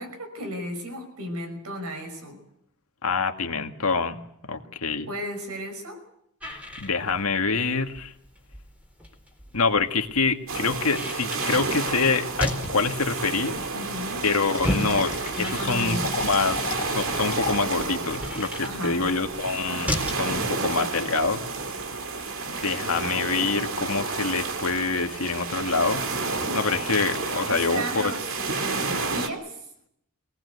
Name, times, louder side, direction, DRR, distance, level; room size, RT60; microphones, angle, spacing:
voice 1, 0.0-2.4 5.1-6.0 13.7-14.2 15.3-16.3 18.6-19.1 27.4-29.7, equal, 85° right, 6 dB, 5.8 m, -34 dB
voice 2, 3.0-4.2 4.5-5.1 6.8-8.1 9.5-13.6 14.2-15.1 15.4-16.7 17.0-21.4 22.5-28.1, left 4 dB, 75° left, 5 dB, 2.0 m, -26 dB
sound 1, 6.4-20.3, equal, 5° right, 4.0 m, -36 dB
sound 2, 10.5-29.3, right 4 dB, 60° right, 2.3 m, -31 dB
Fill (with liquid), 13.8-17.8, left 5 dB, 30° left, 2.5 m, -36 dB
25.0 x 18.5 x 8.2 m, 0.74 s
head